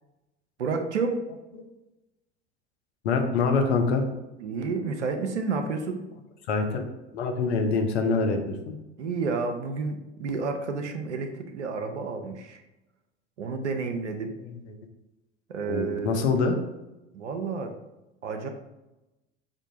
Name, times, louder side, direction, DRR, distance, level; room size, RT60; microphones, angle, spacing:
voice 1, 0.6-1.2 4.4-6.0 9.0-12.6 13.4-14.3 15.5-16.3 17.1-17.7 18.2-18.5, right 4 dB, 90° right, 6 dB, 0.5 m, -30 dB
voice 2, 3.0-4.0 5.6-5.7 6.5-6.9 7.1-8.7 15.7-16.6, left 4 dB, 75° left, 4 dB, 0.7 m, -25 dB
5.2 x 2.5 x 2.7 m, 0.98 s
hypercardioid pair, 75°, 34 cm